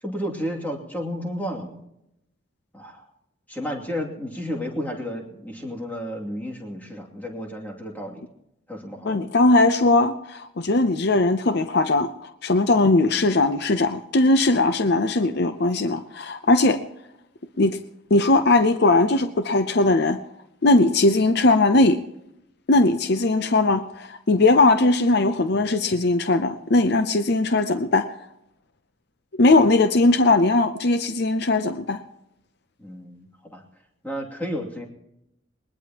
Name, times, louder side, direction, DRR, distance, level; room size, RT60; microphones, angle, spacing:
voice 1, 0.0-1.8 2.7-3.1 3.5-8.3 8.7-9.2 32.8-33.6 34.0-34.9, equal, 10° left, -1 dB, 2.6 m, -32 dB
voice 2, 9.0-16.8 17.6-17.8 18.1-20.2 20.6-22.0 22.7-28.1 29.4-32.0, left 2 dB, 55° left, 10 dB, 0.7 m, -19 dB
21.0 x 20.5 x 2.9 m, 0.84 s
head